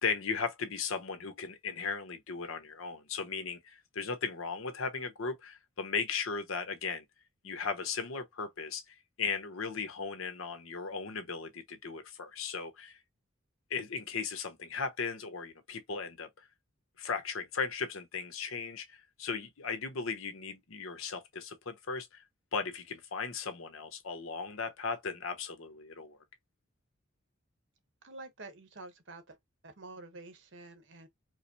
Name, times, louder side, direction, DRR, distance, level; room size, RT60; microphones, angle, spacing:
voice 1, 0.0-7.0 7.4-13.0 13.7-16.5 17.0-22.2 22.5-26.2, left 5 dB, 80° left, 0.9 m, -37 dB
voice 2, 28.0-29.4 29.6-31.1, right 2 dB, 60° right, 0.9 m, -48 dB
4.8 x 2.0 x 2.7 m
head